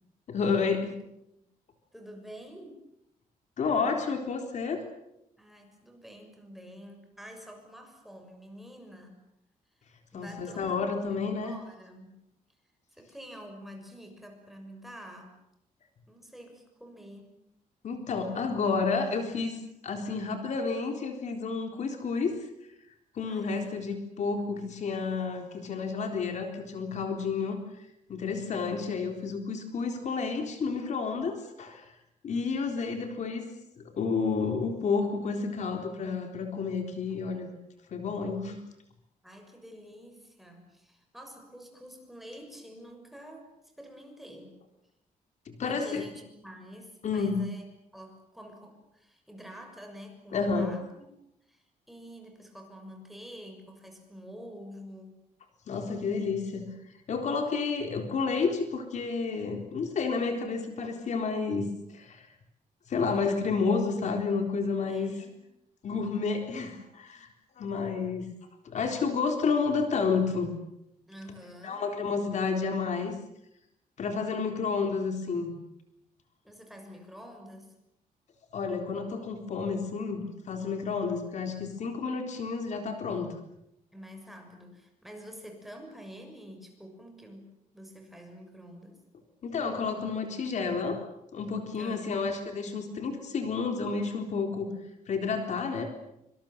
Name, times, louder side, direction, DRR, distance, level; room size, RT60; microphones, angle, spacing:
voice 1, 0.3-1.0 3.6-4.8 10.1-11.5 17.8-22.4 23.1-31.8 32.2-33.4 33.8-37.5 37.9-38.6 45.6-46.0 47.0-47.4 50.3-50.7 55.7-56.7 57.1-61.7 61.9-62.3 62.9-65.2 65.8-67.3 67.6-68.3 68.6-70.5 71.6-73.1 74.0-75.5 78.5-83.3 89.4-91.0 91.3-94.7 95.1-95.9, left 4 dB, 55° left, 5 dB, 3.9 m, -30 dB
voice 2, 1.9-2.8 5.4-9.2 10.1-11.2 11.4-12.2 12.9-15.4 16.1-17.4 23.2-23.9 39.2-43.5 43.8-44.6 45.6-47.7 47.9-51.1 51.5-55.2 64.9-65.4 71.0-71.8 76.4-77.7 83.9-89.0 91.8-92.1, equal, ahead, 3 dB, 6.4 m, -47 dB
26.5 x 25.5 x 7.6 m, 0.81 s
cardioid pair, 150°, 15 cm